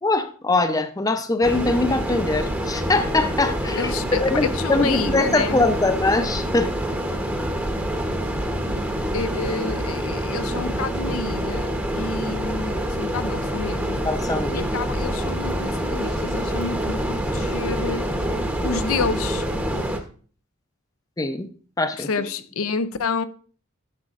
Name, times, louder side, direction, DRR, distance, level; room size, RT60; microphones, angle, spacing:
voice 1, 0.0-6.7 14.0-14.6 21.2-21.5 21.8-22.3, left 2 dB, 15° left, 0.5 m, -22 dB
sound 1, 1.4-20.0, equal, 10° right, 0.9 m, -26 dB
voice 2, 3.8-4.2 4.5-5.6 9.1-14.0 14.5-18.1 18.6-19.5 22.0-23.2, left 4 dB, 75° left, 0.5 m, -29 dB
12.0 x 7.2 x 2.5 m
head